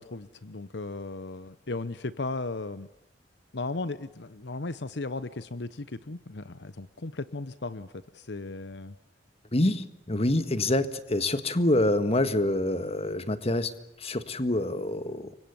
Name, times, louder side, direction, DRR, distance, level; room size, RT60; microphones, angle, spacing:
voice 1, 0.0-2.9 3.5-9.0, left 3 dB, 65° left, 14 dB, 1.0 m, -36 dB
voice 2, 9.5-13.7 14.0-15.3, left 1 dB, 35° left, 11 dB, 1.7 m, -26 dB
30.0 x 24.5 x 7.1 m, 0.85 s
head